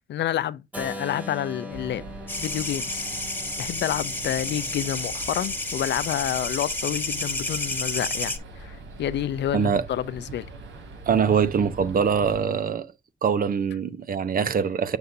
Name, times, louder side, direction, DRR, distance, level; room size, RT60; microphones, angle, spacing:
voice 1, 0.0-2.0 2.4-3.1 3.6-8.3 8.6-10.5, left 11 dB, 65° left, 0.6 m, -29 dB
Keyboard (musical), 0.7-6.6, left 1 dB, 10° right, 1.9 m, -42 dB
sound 1, 1.7-12.4, right 3 dB, 70° right, 2.9 m, -42 dB
sound 2, 2.3-8.4, left 2 dB, 10° left, 1.5 m, -31 dB
voice 2, 9.5-9.8 11.1-12.9 13.2-15.0, right 6 dB, 45° right, 0.9 m, -23 dB
8.0 x 6.8 x 2.7 m
cardioid pair, 90°, 20 cm